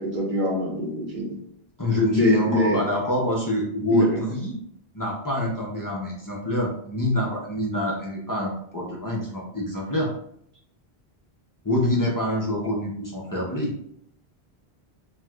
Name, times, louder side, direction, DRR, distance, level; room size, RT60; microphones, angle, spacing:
voice 1, 0.0-1.4 2.1-2.8 3.9-4.2, left 1 dB, 50° right, -3 dB, 1.1 m, -24 dB
voice 2, 1.8-4.6 4.9-10.1 11.6-13.7, left 1 dB, 25° left, -3 dB, 0.4 m, -26 dB
4.3 x 2.3 x 2.2 m, 0.71 s
omnidirectional pair, 1.1 m